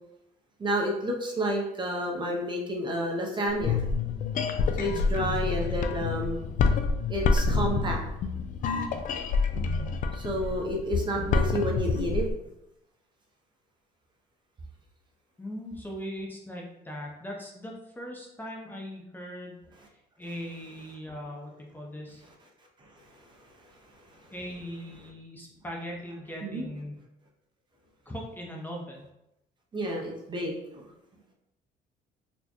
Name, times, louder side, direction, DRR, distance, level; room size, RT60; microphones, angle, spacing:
voice 1, 0.6-3.8 4.8-6.4 7.1-8.0 10.1-12.3 22.9-23.2 24.1-24.3 26.4-26.7 29.7-30.8, equal, 25° right, 0 dB, 0.6 m, -30 dB
sound 1, 3.5-12.3, left 4 dB, 50° left, 0.4 m, -27 dB
voice 2, 15.4-19.6 19.9-22.2 24.3-26.9 28.1-29.1, equal, 10° left, -2 dB, 0.6 m, -40 dB
4.2 x 2.1 x 2.9 m, 0.85 s
cardioid pair, 110°, 17 cm